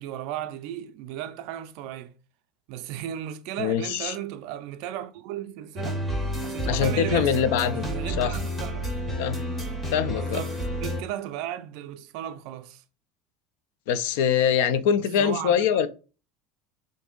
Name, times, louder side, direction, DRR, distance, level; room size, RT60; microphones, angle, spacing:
voice 1, 0.0-2.2 2.7-6.0 6.4-7.4 7.7-8.9 10.1-12.8 15.2-15.9, right 11 dB, 55° right, 0.3 m, -35 dB
voice 2, 3.6-4.2 6.7-8.4 9.2-9.4 9.9-10.4 13.9-15.9, left 8 dB, 75° left, 0.4 m, -24 dB
sound 1, 5.8-11.0, equal, 10° left, 0.6 m, -30 dB
3.4 x 2.6 x 3.7 m
cardioid pair, 175°, 0 cm